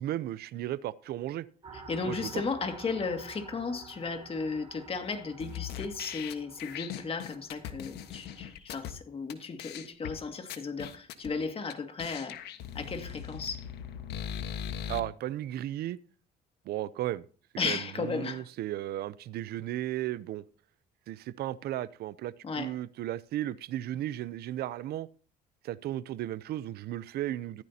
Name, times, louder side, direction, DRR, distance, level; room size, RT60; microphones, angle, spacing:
voice 1, 0.0-1.5 2.0-2.4 14.9-16.0 16.7-17.3 17.6-20.4 21.1-25.1 25.6-27.6, right 13 dB, 70° right, 0.7 m, -35 dB
sound 1, 1.6-8.4, right 4 dB, 30° right, 7.9 m, -50 dB
voice 2, 1.7-12.4 12.7-13.7 17.6-18.4 22.4-22.7, left 4 dB, 35° left, 2.2 m, -35 dB
sound 2, 5.4-8.9 9.3-9.4 9.6-10.1 10.5-11.3 11.7-11.8 12.0-15.0, left 9 dB, 75° left, 1.5 m, -39 dB
15.0 x 13.5 x 2.9 m
cardioid pair, 110°, 17 cm